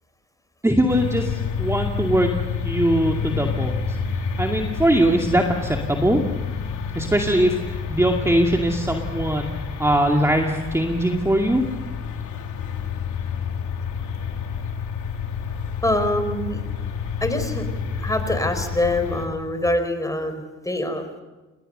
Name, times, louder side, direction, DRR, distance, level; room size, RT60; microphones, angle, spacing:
voice 1, 0.6-2.3 2.6-6.2 6.9-9.5 9.8-11.6, right 1 dB, 10° right, 2 dB, 2.3 m, -21 dB
sound 1, 0.9-19.3, left 6 dB, 80° left, 3.5 m, -29 dB
voice 2, 15.8-16.6 17.2-17.6 18.0-21.2, left 1 dB, 10° left, 8 dB, 4.8 m, -24 dB
29.5 x 19.5 x 6.7 m, 1.2 s
cardioid pair, 90°, 30 cm